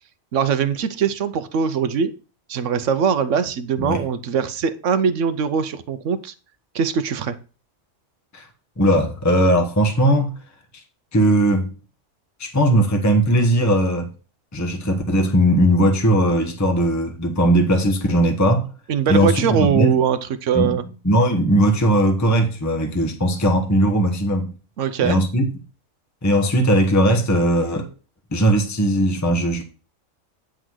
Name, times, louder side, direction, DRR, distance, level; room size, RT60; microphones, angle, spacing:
voice 1, 0.3-2.1 2.5-6.3 6.7-7.4 18.9-20.8 24.8-25.2, right 7 dB, 65° right, 1.1 m, -21 dB
voice 2, 8.8-10.3 11.1-11.7 12.4-14.1 14.5-18.7 19.1-20.0 20.5-20.8 21.0-24.5 25.0-25.4 26.2-27.9 28.3-29.6, right 1 dB, 15° left, 1.0 m, -18 dB
9.6 x 3.8 x 6.2 m
omnidirectional pair, 1.4 m